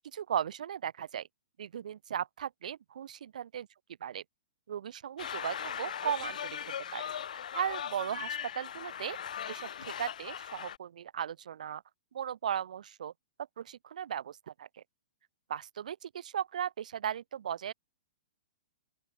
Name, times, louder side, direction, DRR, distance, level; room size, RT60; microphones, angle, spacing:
voice 1, 0.1-1.3 1.6-3.7 4.0-4.2 4.7-7.0 7.5-9.2 9.5-11.8 12.1-13.1 13.6-14.8 15.5-17.7, right 9 dB, 75° right, 1.1 m, -37 dB
sound 1, 5.2-10.8, left 9 dB, 75° left, 1.8 m, -39 dB
open air
hypercardioid pair, 150°, 4 cm